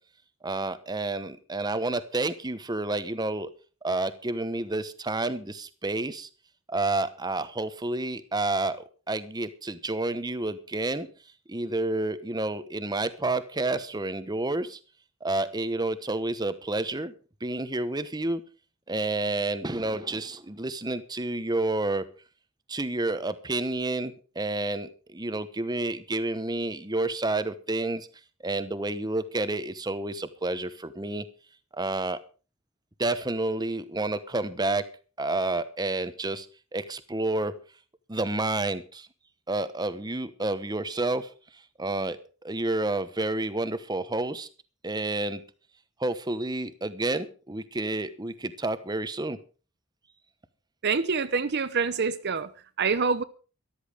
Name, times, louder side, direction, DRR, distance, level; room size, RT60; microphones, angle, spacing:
voice 1, 0.4-3.5 3.8-6.3 6.7-11.1 11.5-14.8 15.2-17.1 17.4-18.4 18.9-22.0 22.7-28.1 28.4-31.3 31.7-32.2 33.0-34.9 35.2-36.5 36.7-37.6 38.1-39.1 39.5-41.3 41.8-42.2 42.4-44.5 44.8-45.4 46.0-49.4, right 2 dB, 20° right, 1.0 m, -29 dB
voice 2, 50.8-52.5 52.8-53.2, right 5 dB, 50° right, 0.7 m, -26 dB
14.0 x 12.5 x 4.9 m
head